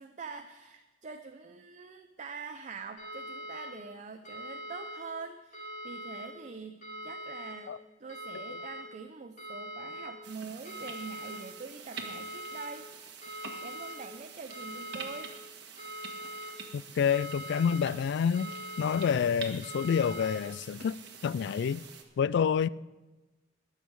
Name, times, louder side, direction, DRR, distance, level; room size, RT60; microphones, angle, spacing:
voice 1, 0.0-7.7 8.0-12.9 13.6-15.3, right 4 dB, 40° right, 0.6 m, -44 dB
sound 1, 3.0-3.7 4.2-5.0 5.5-6.3 6.8-7.5 8.1-8.8 9.4-10.1 10.6-11.4 11.9-12.7 13.2-13.9 14.5-15.2 15.8-16.5 17.0-17.8 18.3-19.1 19.6-20.3, equal, 45° left, 5.5 m, -42 dB
sound 2, 10.2-22.0, right 5 dB, 65° right, 1.5 m, -47 dB
voice 2, 16.7-18.5 18.8-21.0 21.2-21.8 22.2-22.7, left 7 dB, 65° left, 0.3 m, -28 dB
21.5 x 7.3 x 4.7 m
head